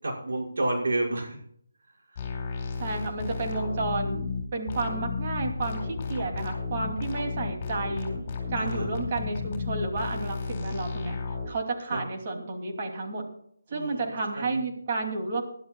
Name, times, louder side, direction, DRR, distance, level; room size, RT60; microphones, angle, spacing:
voice 1, 0.0-1.4 2.1-2.3 8.6-9.0 11.9-12.1 13.7-14.6, right 2 dB, 70° right, -2 dB, 5.9 m, -31 dB
sound 1, 2.2-11.5, left 4 dB, 30° left, 4.6 m, -33 dB
voice 2, 2.8-4.2 4.5-8.1 8.5-11.2 11.5-13.3 13.7-15.4, right 3 dB, 40° right, 2 dB, 2.8 m, -31 dB
20.5 x 12.0 x 2.4 m, 0.66 s
figure-of-eight pair, 160°, 0 cm